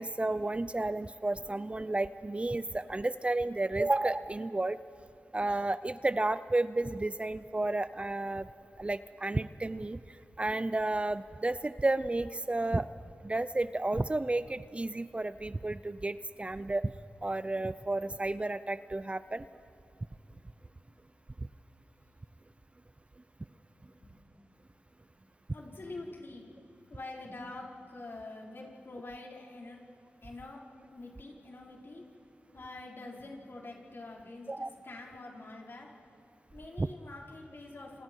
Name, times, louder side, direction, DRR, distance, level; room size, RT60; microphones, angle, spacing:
voice 1, 0.0-4.8 5.3-8.5 8.8-12.9 13.2-16.9 17.2-19.5 34.5-34.7 36.8-36.9, right 2 dB, 25° right, 14 dB, 0.5 m, -32 dB
voice 2, 23.8-24.5 25.1-26.5 26.9-29.8 30.2-30.6 30.9-32.1 32.5-35.9 36.5-38.0, left 2 dB, 55° left, -2 dB, 4.6 m, -46 dB
28.0 x 28.0 x 4.7 m, 2.5 s
cardioid pair, 55°, 5 cm